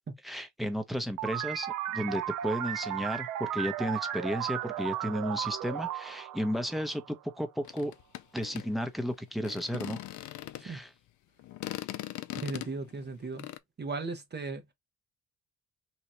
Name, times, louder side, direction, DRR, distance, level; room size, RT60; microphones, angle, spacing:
voice 1, 0.2-7.9 8.3-10.0 10.6-10.9, equal, ahead, 0.8 m, -33 dB
sound 1, 1.2-7.4, right 12 dB, 85° right, 0.6 m, -35 dB
sound 2, 7.6-10.8 11.4-13.6, left 15 dB, 75° left, 0.5 m, -40 dB
voice 2, 12.3-13.5 13.8-14.7, right 3 dB, 35° right, 1.0 m, -37 dB
3.0 x 2.3 x 4.2 m
cardioid pair, 90°, 30 cm